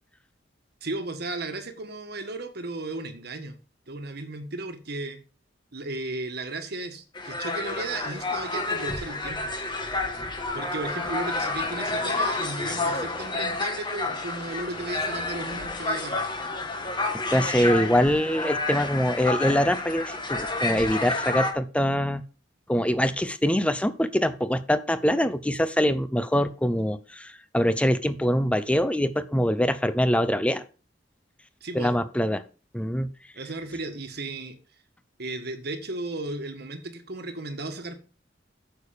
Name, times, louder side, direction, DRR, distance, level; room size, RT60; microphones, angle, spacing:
voice 1, 0.8-3.6 3.9-5.2 5.7-9.5 10.5-16.2 31.6-31.9 33.3-34.6 35.2-38.0, right 2 dB, 60° right, 6 dB, 1.5 m, -35 dB
sound 1, 7.2-21.5, left 2 dB, 25° left, 1.6 m, -30 dB
voice 2, 17.1-22.2 22.7-30.6 31.7-32.4 32.7-33.1, equal, 5° left, 12 dB, 0.7 m, -24 dB
8.8 x 6.8 x 5.2 m, 0.36 s
head